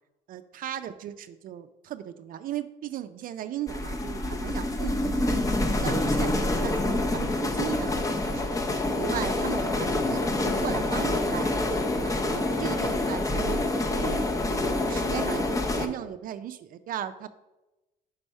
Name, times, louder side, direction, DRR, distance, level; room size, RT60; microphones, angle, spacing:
voice 1, 0.3-12.2 12.5-14.3 14.8-17.3, right 10 dB, 55° right, 11 dB, 0.4 m, -37 dB
sound 1, 3.7-15.9, left 2 dB, 20° left, 0.6 m, -27 dB
5.3 x 3.3 x 5.3 m, 1.0 s
cardioid pair, 95°, 17 cm